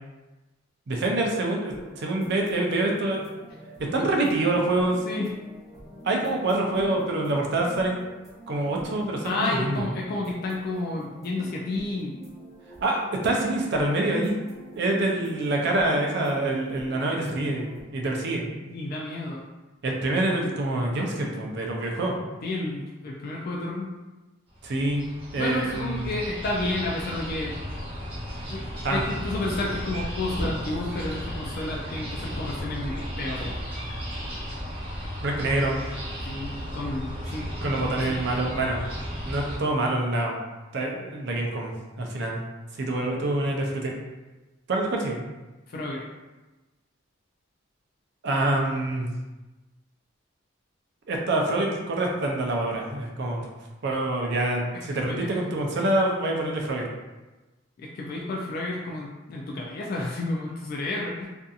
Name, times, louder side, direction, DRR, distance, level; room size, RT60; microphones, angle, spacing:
voice 1, 0.9-3.2 3.9-5.0 6.0-8.0 8.5-9.9 12.8-14.4 14.7-18.5 19.8-22.2 24.6-25.1 25.3-26.1 28.8-29.0 35.2-35.8 37.6-38.8 39.2-40.4 40.7-42.4 42.7-43.9 44.7-45.3 48.2-49.1 51.1-53.5 53.8-56.8, right 2 dB, 55° right, 0 dB, 0.5 m, -26 dB
sound 1, 1.7-17.8, right 1 dB, ahead, 1.3 m, -46 dB
voice 2, 9.2-12.1 18.3-19.4 22.4-23.9 25.4-27.6 28.5-28.6 28.9-33.5 36.2-38.2 45.7-46.0 55.1-55.3 57.8-61.3, left 2 dB, 45° left, -2 dB, 0.3 m, -31 dB
sound 2, 24.5-39.6, equal, 30° right, 0.8 m, -35 dB
Squeak, 28.8-34.0, equal, 25° left, 1.1 m, -40 dB
2.6 x 2.5 x 2.4 m, 1.1 s
head